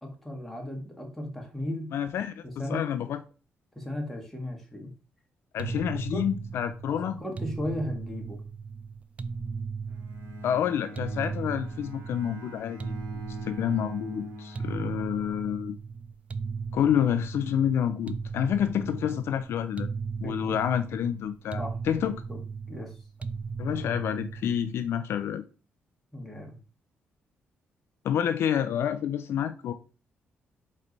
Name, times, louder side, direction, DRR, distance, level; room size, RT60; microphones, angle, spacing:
voice 1, 0.0-1.9 2.4-2.9 3.7-4.9 6.1-6.3 6.9-8.4 20.2-20.4 21.6-21.8 22.3-22.4 22.7-23.0 26.1-26.6, left 1 dB, 5° left, 1.4 m, -36 dB
voice 2, 1.9-2.4 2.7-3.2 5.5-7.2 10.4-15.8 16.7-19.9 20.2-22.1 23.6-25.4 28.0-29.7, left 9 dB, 70° left, 0.4 m, -28 dB
sound 1, 5.6-24.9, right 5 dB, 35° right, 0.3 m, -37 dB
Bowed string instrument, 9.9-15.7, left 1 dB, 85° right, 1.3 m, -44 dB
4.3 x 3.1 x 3.9 m
cardioid pair, 105°, 4 cm